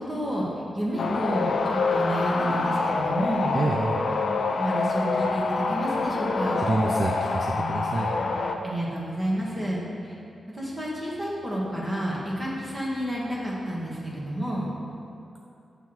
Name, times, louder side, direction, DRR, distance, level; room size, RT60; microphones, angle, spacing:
voice 1, 0.1-0.5 0.7-3.5 4.6-6.6 8.6-10.1 10.6-14.7, equal, 25° right, -5 dB, 1.4 m, -30 dB
sound 1, 1.0-8.6, left 3 dB, 65° left, 0.4 m, -26 dB
voice 2, 3.5-4.0 6.6-8.1, right 2 dB, 45° right, 1 dB, 0.3 m, -27 dB
7.4 x 3.4 x 4.7 m, 2.5 s
wide cardioid pair, 100°, 0 cm